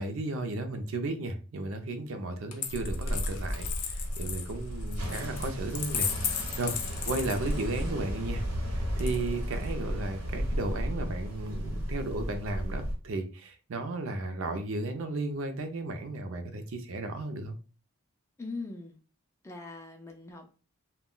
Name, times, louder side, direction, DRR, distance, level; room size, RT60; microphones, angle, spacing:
voice 1, 0.0-8.4 8.7-17.6, right 2 dB, 65° right, 0.5 m, -34 dB
Coin (dropping), 2.5-7.9 9.0-9.7, left 8 dB, 80° left, 0.5 m, -35 dB
sound 1, 2.7-13.0, equal, 85° right, 1.0 m, -34 dB
voice 2, 18.4-19.0 19.4-20.6, left 3 dB, 10° left, 0.3 m, -41 dB
2.2 x 2.1 x 3.7 m
head